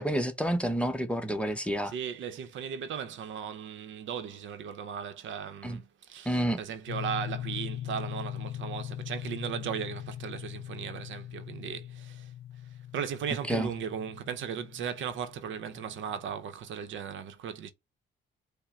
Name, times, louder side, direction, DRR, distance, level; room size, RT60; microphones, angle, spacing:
voice 1, 0.0-1.9 5.6-5.8 6.3-6.6 13.5-13.7, equal, 5° left, 0.7 m, -29 dB
voice 2, 1.8-12.2 12.9-17.7, right 8 dB, 75° right, 0.7 m, -37 dB
sound 1, 6.9-16.4, left 11 dB, 75° left, 0.5 m, -41 dB
5.6 x 2.1 x 3.7 m
cardioid pair, 90°, 20 cm